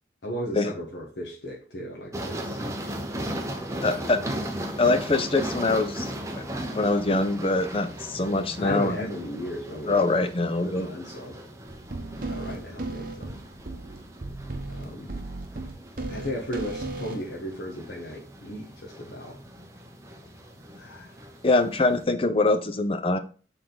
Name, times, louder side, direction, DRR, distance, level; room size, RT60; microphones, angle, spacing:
voice 1, 0.2-2.6 3.6-4.0 8.6-10.3 10.5-11.4 12.2-13.4 14.7-15.1 16.1-19.4 20.7-21.1, equal, 80° left, -3 dB, 1.4 m, -36 dB
sound 1, 2.1-22.0, right 1 dB, 15° right, 0.9 m, -38 dB
voice 2, 3.8-4.2 4.8-6.1 6.7-9.1 9.9-10.9 21.4-23.2, left 2 dB, 30° left, 10 dB, 0.6 m, -23 dB
sound 2, 11.7-17.3, right 2 dB, 50° right, 1.0 m, -35 dB
6.9 x 3.9 x 3.9 m, 0.37 s
head